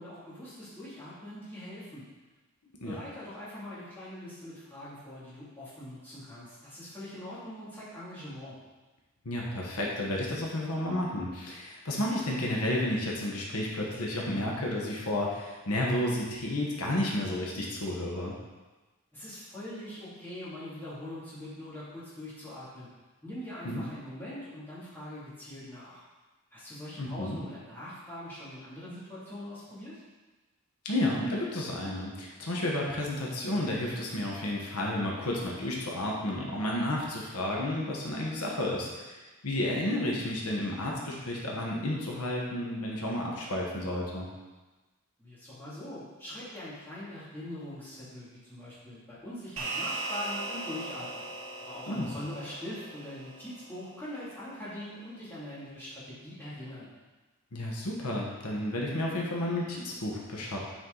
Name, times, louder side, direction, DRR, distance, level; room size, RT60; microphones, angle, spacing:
voice 1, 0.0-2.0 2.9-8.6 19.1-22.9 23.2-26.0 26.5-30.0 45.2-51.3 51.6-56.9, left 1 dB, 10° left, -10 dB, 2.6 m, -42 dB
voice 2, 9.2-18.3 23.6-23.8 27.0-27.4 30.8-44.3 51.9-52.1 57.5-60.6, left 1 dB, 85° left, -2 dB, 1.3 m, -31 dB
sound 1, 49.6-54.2, right 2 dB, 65° right, 1.6 m, -39 dB
8.6 x 4.7 x 3.9 m, 1.2 s
head